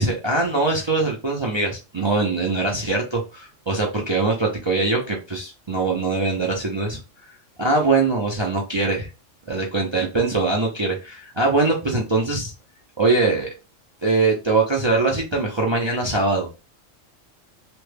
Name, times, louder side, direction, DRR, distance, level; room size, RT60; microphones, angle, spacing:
voice 1, 0.0-7.0 7.6-9.1 9.5-12.5 13.0-13.5 14.0-16.5, right 3 dB, 45° right, 0 dB, 0.3 m, -22 dB
3.3 x 2.2 x 3.2 m, 0.30 s
omnidirectional pair, 1.4 m